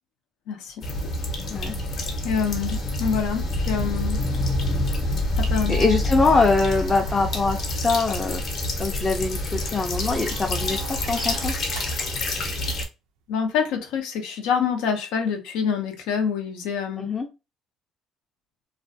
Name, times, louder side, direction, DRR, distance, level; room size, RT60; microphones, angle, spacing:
sound 1, 0.8-12.8, left 1 dB, 50° left, 0.7 m, -27 dB
voice 1, 2.2-4.2 5.4-5.8 13.3-17.1, left 6 dB, 90° left, 4 dB, 0.6 m, -26 dB
sound 2, 5.5-8.0 9.8-12.3 13.9-14.0, right 8 dB, 90° right, 0.4 m, -43 dB
voice 2, 5.7-8.4 8.8-10.8 11.1-11.5 17.0-17.3, left 3 dB, 25° left, 1 dB, 0.4 m, -23 dB
2.4 x 2.1 x 2.6 m, 0.27 s
cardioid pair, 115°, 0 cm